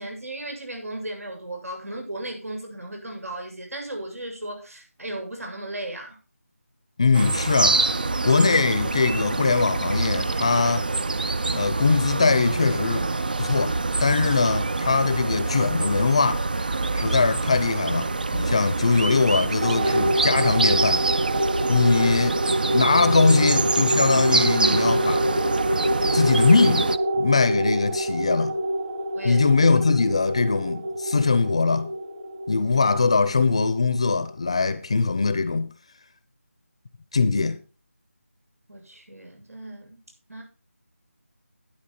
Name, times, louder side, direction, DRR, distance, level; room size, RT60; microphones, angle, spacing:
voice 1, 0.0-6.2 21.7-21.9 29.1-29.5 38.7-40.4, right 1 dB, 80° right, 7.6 m, -36 dB
voice 2, 7.0-7.8 8.2-10.9 11.5-13.1 13.4-16.5 16.9-21.0 21.7-22.4 22.7-25.3 26.1-26.9 27.2-28.5 29.2-31.9 32.5-35.7 37.1-37.6, left 4 dB, 25° left, 0.7 m, -21 dB
sound 1, 7.1-27.0, right 3 dB, 35° right, 0.5 m, -25 dB
sound 2, 19.6-34.4, right 1 dB, 20° right, 1.4 m, -26 dB
12.0 x 10.0 x 4.2 m
figure-of-eight pair, 175°, 8 cm